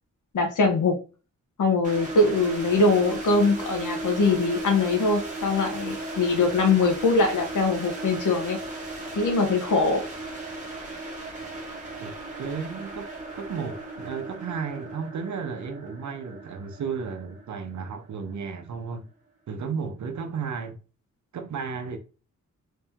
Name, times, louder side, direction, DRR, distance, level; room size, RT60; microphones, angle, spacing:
voice 1, 0.3-1.0 1.6-8.6 9.1-10.0, left 3 dB, 80° left, 1.1 m, -22 dB
sound 1, 1.8-18.7, right 2 dB, 25° right, 1.3 m, -36 dB
voice 2, 12.4-13.1 13.3-19.1 19.5-20.8 21.3-22.0, right 5 dB, 70° right, 0.7 m, -33 dB
3.2 x 2.9 x 3.5 m
wide cardioid pair, 175°, 30 cm